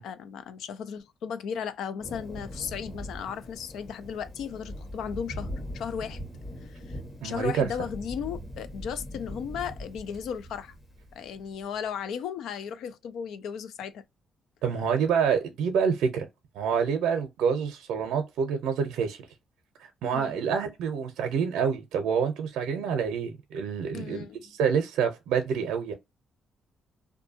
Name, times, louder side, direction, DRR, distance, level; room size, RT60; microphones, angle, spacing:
voice 1, 0.0-6.3 6.6-10.8 11.1-14.0 20.1-20.4 23.9-24.4, left 7 dB, 80° left, 0.4 m, -36 dB
Thunder, 2.0-11.6, equal, 35° left, 1.2 m, -41 dB
voice 2, 7.2-7.7 14.6-16.3 16.5-19.2 20.0-24.3 24.6-25.9, right 6 dB, 85° right, 0.6 m, -27 dB
2.6 x 2.3 x 2.6 m
cardioid pair, 90°, 0 cm